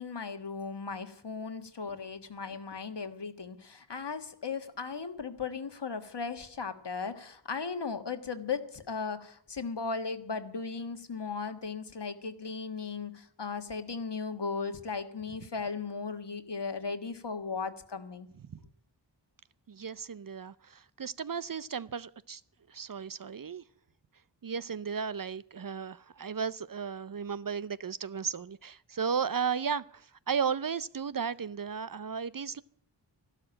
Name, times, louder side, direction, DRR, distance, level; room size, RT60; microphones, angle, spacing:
voice 1, 0.0-18.3, left 5 dB, 60° left, 1.5 m, -37 dB
voice 2, 19.7-22.4 22.7-23.6 24.4-32.6, right 6 dB, 45° right, 0.6 m, -34 dB
13.5 x 12.5 x 8.7 m
wide cardioid pair, 55°, 46 cm